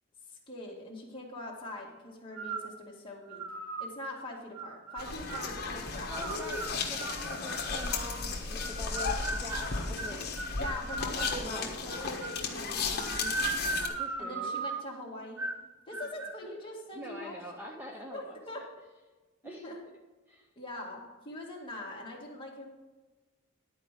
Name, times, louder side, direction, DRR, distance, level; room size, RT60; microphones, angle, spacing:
voice 1, 0.3-3.4 3.8-6.1 10.6-13.3 14.2-15.4 15.9-17.4 18.1-18.6 19.4-19.8 20.6-22.7, left 1 dB, 25° left, -3 dB, 2.0 m, -43 dB
sound 1, 2.3-2.8 3.3-3.9 4.5-5.5 6.1-8.0 8.6-11.4 11.9-12.5 12.9-14.9 15.4-15.7 15.9-16.4, right 3 dB, 85° right, 0.9 m, -37 dB
sound 2, 5.0-13.9, left 4 dB, 45° left, 1.3 m, -35 dB
voice 2, 6.1-10.3 11.2-12.0 13.9-14.6 17.0-18.6 19.4-19.8 20.3-20.5, equal, 10° right, 0 dB, 0.6 m, -45 dB
11.5 x 4.7 x 7.5 m, 1.2 s
head